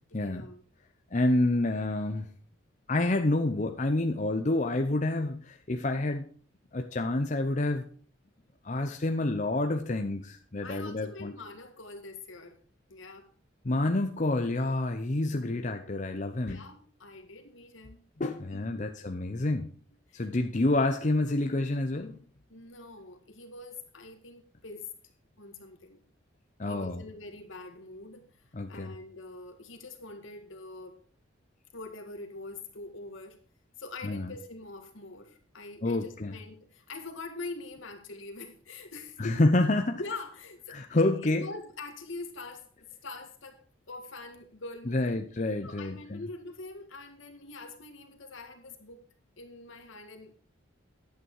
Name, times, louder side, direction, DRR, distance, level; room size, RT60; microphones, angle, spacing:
voice 1, 0.1-0.6 10.6-12.6 12.9-13.3 15.3-15.9 16.5-18.0 18.5-18.9 20.1-20.3 22.5-24.9 25.4-26.0 26.7-31.0 31.7-33.4 33.8-39.4 39.9-42.7 43.0-43.6 43.9-45.2 45.6-49.0 49.4-50.4, left 3 dB, 75° left, 5 dB, 1.9 m, -44 dB
voice 2, 1.1-2.3 2.9-6.2 6.7-7.8 8.6-11.3 13.6-16.6 18.2-19.7 20.1-22.2 26.6-27.0 28.5-28.9 34.0-34.3 35.8-36.3 39.2-40.0 40.7-41.5 44.9-46.2, left 2 dB, 40° left, 6 dB, 0.7 m, -28 dB
11.0 x 9.0 x 4.7 m, 0.43 s
head